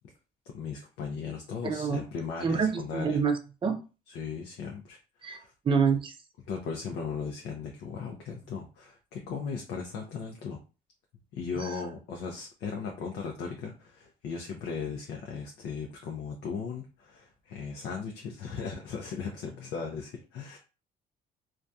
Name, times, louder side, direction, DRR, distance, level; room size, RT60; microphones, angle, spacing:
voice 1, 0.5-3.2 4.1-5.5 6.5-10.6 11.3-20.6, left 5 dB, 75° left, 1 dB, 0.5 m, -37 dB
voice 2, 1.6-2.0 2.4-3.8 5.2-5.4 5.6-6.1 11.6-11.7, right 6 dB, 30° right, 6 dB, 0.5 m, -27 dB
2.6 x 2.3 x 2.3 m, 0.32 s
cardioid pair, 110°, 17 cm